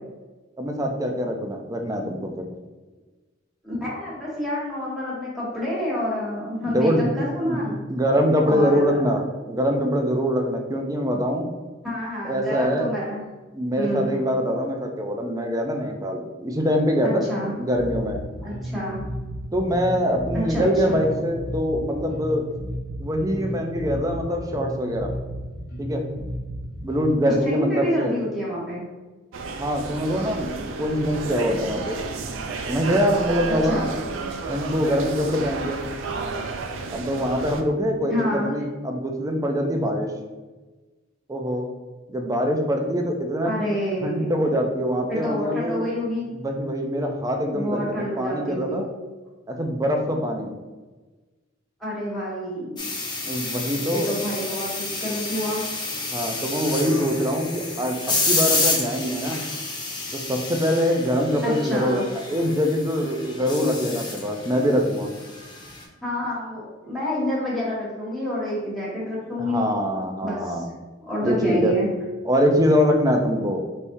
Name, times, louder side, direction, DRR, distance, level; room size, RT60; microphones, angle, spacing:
voice 1, 0.6-2.5 6.7-7.1 7.4-7.6 7.9-9.2 9.5-11.5 12.2-12.9 13.5-17.2 17.5-18.2 19.5-22.4 23.0-25.1 25.8-26.0 26.8-28.1 29.6-30.5 30.8-32.0 32.7-33.9 34.5-35.8 36.9-40.1 41.3-41.7 42.1-43.5 44.0-45.8 46.3-48.9 49.5-50.5 53.2-54.1 54.4-54.5 56.1-59.4 60.1-65.1 69.4-70.6 71.2-71.7 72.2-73.6, equal, 15° right, 3 dB, 0.5 m, -24 dB
voice 2, 3.6-7.8 8.4-9.0 11.8-13.2 13.7-14.2 17.0-17.5 18.4-19.0 20.3-21.0 27.2-28.8 33.5-33.9 38.1-38.5 43.4-44.3 45.1-46.3 47.5-48.8 51.8-52.9 53.9-55.6 61.4-62.0 66.0-69.7 70.2-70.6 71.0-71.9, equal, ahead, -8 dB, 1.5 m, -28 dB
Bass guitar, 17.8-27.3, right 1 dB, 50° left, 1.0 m, -33 dB
sound 1, 29.3-37.6, right 3 dB, 70° right, 0.4 m, -32 dB
sound 2, 52.8-65.8, left 3 dB, 25° left, 0.7 m, -29 dB
4.2 x 3.5 x 2.7 m, 1.2 s
head